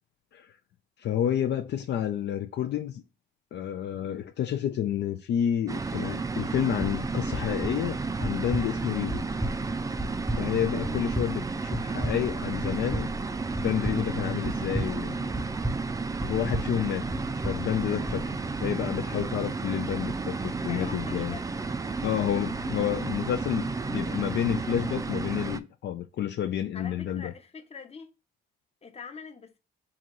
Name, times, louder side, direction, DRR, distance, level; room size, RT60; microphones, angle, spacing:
voice 1, 1.0-3.0 3.5-9.2 10.4-13.1 13.6-15.3 16.3-17.1 17.4-21.4 22.0-27.3, left 10 dB, 60° left, 0.5 m, -30 dB
sound 1, 5.7-25.6, right 4 dB, 15° right, 0.4 m, -32 dB
sound 2, 6.8-18.2, equal, 5° left, 0.8 m, -35 dB
sound 3, 17.6-23.4, right 5 dB, 70° right, 0.8 m, -48 dB
voice 2, 20.7-21.4 26.7-28.1 28.8-29.6, left 5 dB, 30° left, 0.9 m, -44 dB
3.9 x 2.9 x 4.6 m
cardioid pair, 90°, 20 cm